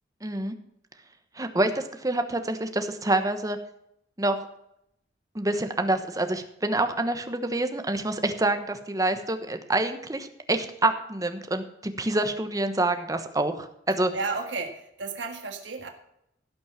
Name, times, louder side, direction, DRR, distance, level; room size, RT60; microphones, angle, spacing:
voice 1, 0.2-0.6 1.4-3.6 4.2-4.4 5.3-14.1, right 2 dB, 20° right, 7 dB, 1.1 m, -27 dB
voice 2, 14.1-15.9, right 4 dB, 80° right, 4 dB, 1.7 m, -32 dB
16.5 x 6.3 x 5.8 m, 0.78 s
head